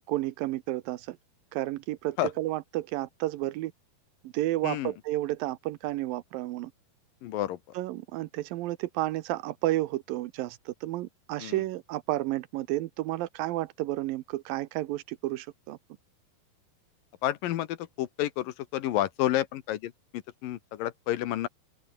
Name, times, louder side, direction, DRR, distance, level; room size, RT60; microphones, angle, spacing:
voice 1, 0.1-1.2 1.5-3.7 4.2-6.7 7.7-15.8, right 16 dB, 80° right, 2.4 m, -31 dB
voice 2, 7.2-7.6 11.4-11.5 17.2-21.5, left 13 dB, 75° left, 2.6 m, -30 dB
open air
omnidirectional pair, 4.3 m